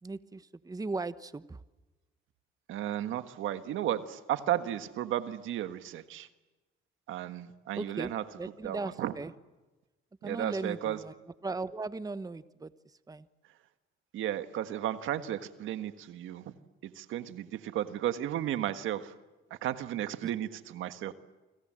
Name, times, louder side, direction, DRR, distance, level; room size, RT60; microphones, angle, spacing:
voice 1, 0.0-1.6 7.8-8.1 8.4-9.3 10.2-11.1 11.4-12.7 13.1-13.3, right 3 dB, 20° right, 13 dB, 1.1 m, -37 dB
voice 2, 2.7-6.3 7.1-8.2 8.6-9.1 10.2-11.0 14.1-16.5 16.8-19.1 19.5-21.1, right 11 dB, 85° right, 10 dB, 1.7 m, -34 dB
29.5 x 25.5 x 7.7 m, 1.1 s
cardioid pair, 90°, 20 cm